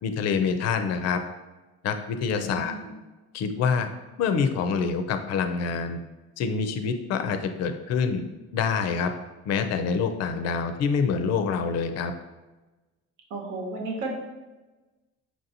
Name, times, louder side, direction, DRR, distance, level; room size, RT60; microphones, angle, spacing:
voice 1, 0.0-1.2 1.8-2.7 3.3-3.9 4.2-6.0 6.4-8.2 8.5-9.1 9.5-12.1, left 5 dB, 60° left, 8 dB, 0.5 m, -26 dB
voice 2, 2.3-2.9 13.3-14.1, right 3 dB, 75° right, 1 dB, 1.0 m, -34 dB
5.8 x 2.6 x 2.8 m, 1.1 s
cardioid pair, 125°, 30 cm